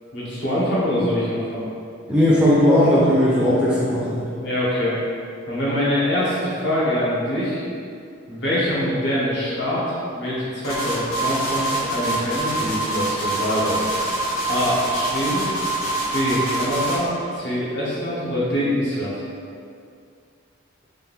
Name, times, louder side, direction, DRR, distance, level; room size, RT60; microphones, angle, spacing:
voice 1, 0.1-1.6 4.4-5.0 5.5-7.6 8.3-13.8 14.5-15.5 16.1-19.2, equal, 55° left, -8 dB, 0.9 m, -24 dB
voice 2, 2.1-4.3, left 1 dB, 5° right, -8 dB, 0.4 m, -17 dB
sound 1, 10.6-17.1, right 1 dB, 85° left, 1.1 m, -25 dB
3.4 x 2.5 x 3.4 m, 2.4 s
head